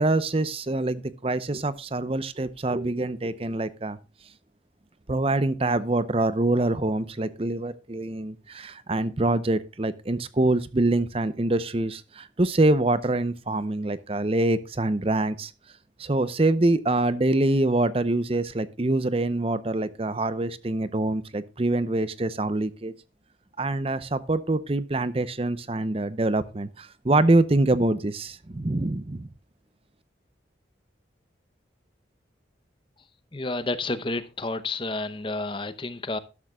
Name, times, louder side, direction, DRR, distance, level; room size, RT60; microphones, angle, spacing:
voice 1, 0.0-4.0 5.1-15.5 16.0-22.9 23.6-29.3, right 2 dB, 30° right, 0.6 m, -25 dB
voice 2, 33.3-36.2, left 2 dB, 25° left, 0.7 m, -30 dB
13.0 x 12.0 x 2.3 m
head